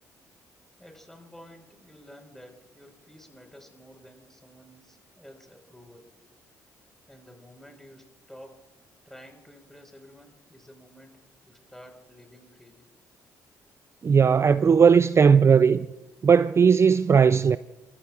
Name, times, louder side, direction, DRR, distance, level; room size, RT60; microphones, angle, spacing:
voice 1, 0.8-6.1 7.1-8.7 9.0-12.9, equal, 5° left, 4.6 m, -51 dB
voice 2, 14.0-15.9 16.2-17.6, right 6 dB, 35° right, 0.3 m, -18 dB
29.0 x 14.5 x 2.4 m
hypercardioid pair, 50°, 8 cm